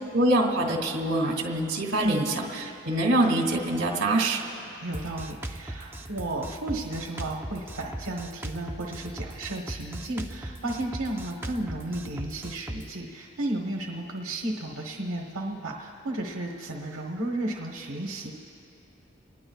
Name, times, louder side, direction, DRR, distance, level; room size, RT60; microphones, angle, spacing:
voice 1, 0.1-4.4, right 1 dB, 55° right, 0 dB, 2.4 m, -25 dB
voice 2, 4.8-18.3, right 1 dB, 85° right, 0 dB, 1.2 m, -33 dB
Drum kit, 4.9-12.9, right 1 dB, 10° right, 0.5 m, -38 dB
29.0 x 19.5 x 2.4 m, 2.8 s
head